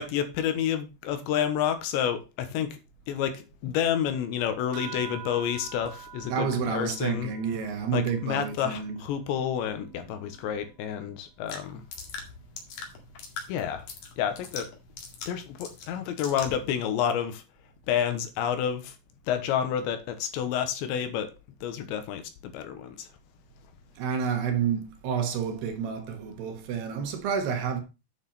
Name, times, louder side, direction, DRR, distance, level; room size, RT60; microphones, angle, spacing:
voice 1, 0.0-2.8 3.1-7.3 7.9-11.8 13.5-13.9 14.2-14.7 15.3-17.4 17.9-19.0 19.3-21.3 21.6-23.1, left 9 dB, 80° left, 3.4 m, -29 dB
sound 1, 4.7-9.7, right 9 dB, 85° right, 3.7 m, -46 dB
voice 2, 6.3-9.0 24.0-27.8, right 7 dB, 70° right, 3.4 m, -29 dB
Keyboard (musical), 9.6-11.5, right 16 dB, 35° left, 4.1 m, -56 dB
sound 2, 11.5-16.7, left 5 dB, 55° left, 3.3 m, -42 dB
8.9 x 7.2 x 4.2 m
omnidirectional pair, 5.2 m